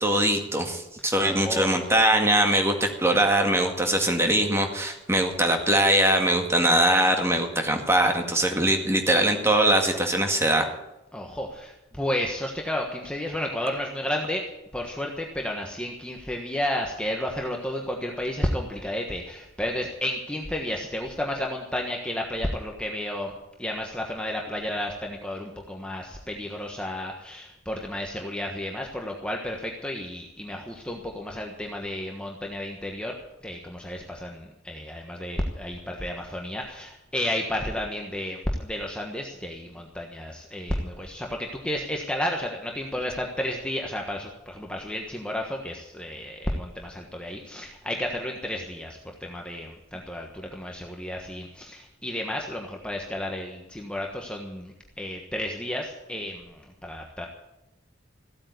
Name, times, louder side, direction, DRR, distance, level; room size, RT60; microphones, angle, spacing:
voice 1, 0.0-10.7, right 1 dB, 15° right, 4 dB, 2.0 m, -22 dB
voice 2, 1.2-1.9 11.1-14.4 14.7-23.3 23.6-33.2 33.4-57.3, left 1 dB, 5° left, 1 dB, 1.3 m, -32 dB
15.5 x 8.7 x 9.4 m, 0.94 s
head